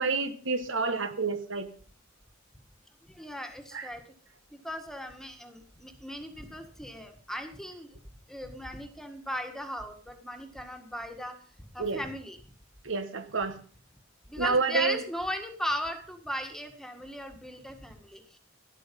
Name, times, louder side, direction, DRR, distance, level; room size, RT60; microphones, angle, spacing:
voice 1, 0.0-1.7 3.7-3.9 11.8-12.0 12.8-13.6 14.4-15.0, right 4 dB, 70° right, 9 dB, 1.5 m, -29 dB
voice 2, 3.0-4.0 4.5-8.0 8.3-11.4 11.7-12.4 14.3-18.4, equal, ahead, 6 dB, 1.8 m, -37 dB
13.0 x 12.0 x 5.4 m, 0.42 s
head